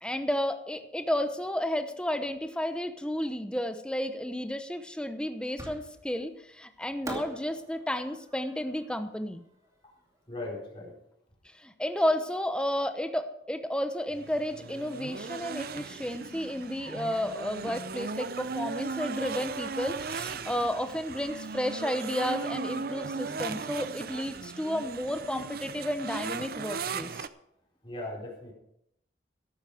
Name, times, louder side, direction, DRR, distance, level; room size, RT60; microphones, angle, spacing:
voice 1, 0.0-9.4 11.5-27.1, equal, 5° left, 8 dB, 0.9 m, -32 dB
Fireworks, 5.6-6.2 7.1-10.2, right 1 dB, 20° right, 2.4 m, -43 dB
voice 2, 10.3-10.9 27.8-28.5, left 2 dB, 25° left, -4 dB, 4.4 m, -38 dB
sound 1, 14.1-27.3, right 5 dB, 55° right, 0.6 m, -37 dB
13.5 x 12.0 x 5.0 m, 0.77 s
head